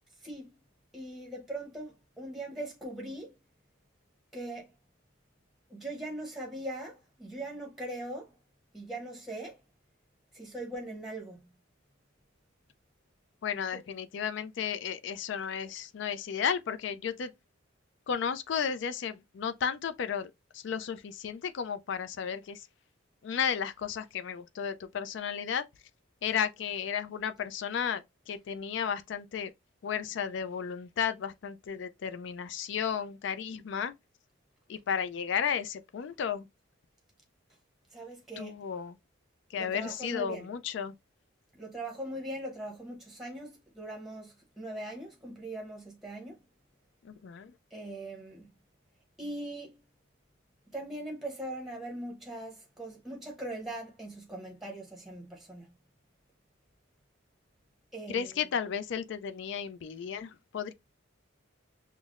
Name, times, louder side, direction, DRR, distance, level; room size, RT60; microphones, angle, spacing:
voice 1, 0.2-0.5 0.9-3.4 4.3-4.7 5.7-8.3 8.7-9.6 10.3-11.5 37.9-38.6 39.6-40.5 41.5-46.4 47.7-48.5 49.2-49.8 50.7-55.7 57.9-58.3, right 1 dB, ahead, 0.8 m, -40 dB
voice 2, 13.4-17.3 18.1-22.7 23.2-25.6 26.2-29.5 29.8-33.9 34.7-36.5 38.4-39.0 39.5-40.9 47.0-47.5 58.1-60.7, left 7 dB, 60° left, 0.3 m, -33 dB
5.6 x 2.0 x 2.4 m
head